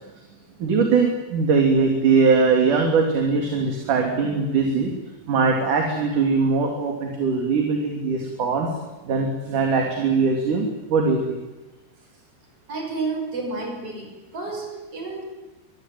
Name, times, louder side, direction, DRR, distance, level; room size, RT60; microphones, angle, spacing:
voice 1, 0.6-4.9 5.3-8.7 9.1-11.4, right 4 dB, 50° right, 2 dB, 4.2 m, -21 dB
voice 2, 12.7-15.2, right 3 dB, 35° right, 3 dB, 6.7 m, -30 dB
25.5 x 22.5 x 9.3 m, 1.1 s
omnidirectional pair, 5.0 m